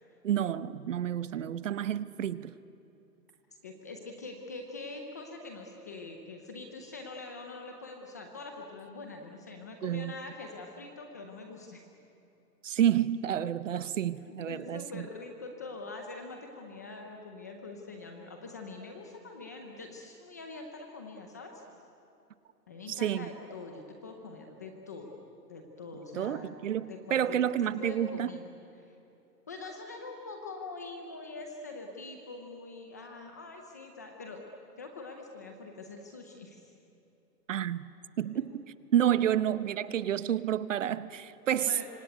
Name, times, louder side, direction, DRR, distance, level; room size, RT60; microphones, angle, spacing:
voice 1, 0.2-2.5 9.8-10.1 12.6-15.1 23.0-23.3 26.1-28.3 37.5-37.9 38.2-38.6 38.9-41.8, right 10 dB, 50° right, 16 dB, 0.9 m, -29 dB
voice 2, 3.6-11.8 14.3-21.6 22.7-25.1 25.5-26.5 26.9-28.5 28.9-29.0 29.5-34.4 34.8-36.6 39.3-39.4 41.7-41.9, left 3 dB, 10° left, 2 dB, 0.6 m, -44 dB
25.5 x 25.0 x 9.3 m, 2.9 s
hypercardioid pair, 160°, 49 cm